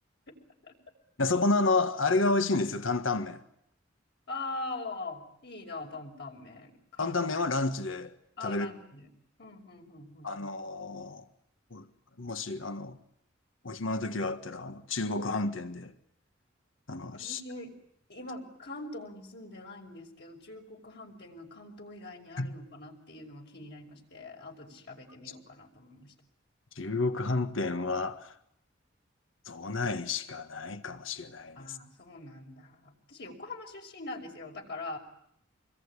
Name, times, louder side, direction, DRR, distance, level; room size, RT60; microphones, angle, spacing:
voice 1, 1.2-3.4 7.0-8.1 8.4-8.7 10.2-11.2 11.7-11.8 12.2-13.0 13.6-15.9 16.9-17.4 22.4-22.5 26.7-28.3 29.4-31.8, left 3 dB, 90° left, 1.6 m, -30 dB
voice 2, 4.3-7.2 8.4-9.1 9.4-10.3 17.1-17.7 18.1-26.1 31.6-35.0, left 2 dB, 60° left, 5.8 m, -43 dB
27.0 x 21.5 x 9.9 m
head